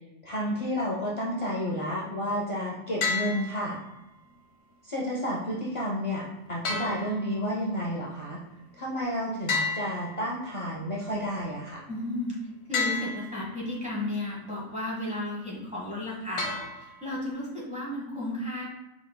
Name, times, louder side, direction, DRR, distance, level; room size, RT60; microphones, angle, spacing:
voice 1, 0.2-3.8 4.8-8.4 8.8-11.8, equal, 45° left, -4 dB, 0.4 m, -31 dB
sound 1, 3.0-4.0 6.6-7.7 9.5-10.7 12.7-13.7 16.4-17.3, left 4 dB, 75° left, 1.1 m, -32 dB
voice 2, 11.9-12.3 12.7-18.7, left 1 dB, 5° right, -6 dB, 1.1 m, -33 dB
4.5 x 4.0 x 2.2 m, 0.96 s
omnidirectional pair, 1.5 m